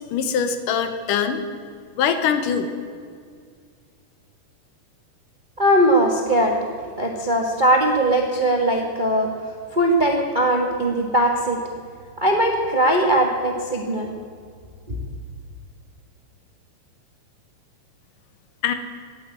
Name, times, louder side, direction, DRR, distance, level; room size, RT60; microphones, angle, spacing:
voice 1, 0.0-1.4 2.0-2.7 18.6-18.7, left 7 dB, 80° left, 9 dB, 2.7 m, -22 dB
voice 2, 5.6-6.6 7.0-9.3 9.7-11.6 12.2-14.1 14.9-15.0, right 1 dB, 40° right, 2 dB, 0.6 m, -20 dB
17.5 x 8.6 x 9.6 m, 2.2 s
omnidirectional pair, 3.8 m